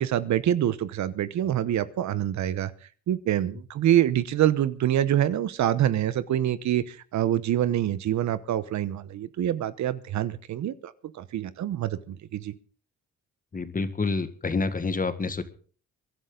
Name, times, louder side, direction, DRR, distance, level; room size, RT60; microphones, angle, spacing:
voice 1, 0.0-2.7 3.1-12.5, right 11 dB, 70° right, 15 dB, 1.0 m, -26 dB
voice 2, 13.5-15.4, left 4 dB, 30° left, 10 dB, 1.8 m, -28 dB
23.0 x 11.5 x 3.9 m, 0.41 s
cardioid pair, 90°, 30 cm